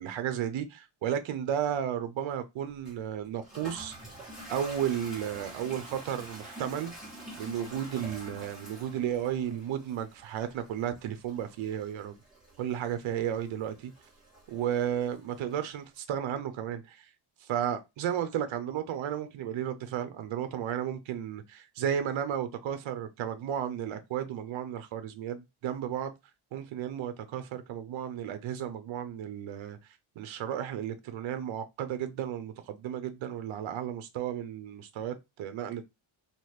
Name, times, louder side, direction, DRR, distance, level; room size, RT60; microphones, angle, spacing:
voice 1, 0.0-3.9 4.5-6.9 7.4-12.2 12.6-13.9 14.5-17.1 17.4-26.1 26.5-29.8 30.2-35.8, right 9 dB, 70° right, 0.7 m, -33 dB
Toilet flush, 2.9-15.6, right 1 dB, ahead, 1.6 m, -47 dB
2.9 x 2.4 x 3.1 m
cardioid pair, 125°, 49 cm